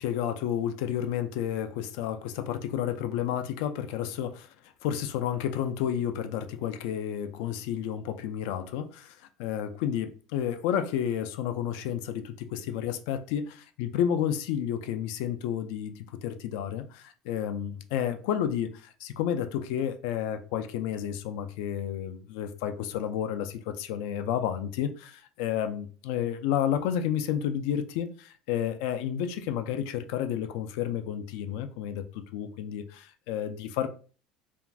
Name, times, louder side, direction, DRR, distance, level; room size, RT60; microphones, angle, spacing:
voice 1, 0.0-4.5 4.8-33.9, left 9 dB, 70° left, 0.3 m, -31 dB
2.5 x 2.3 x 3.2 m
cardioid pair, 170°, 0 cm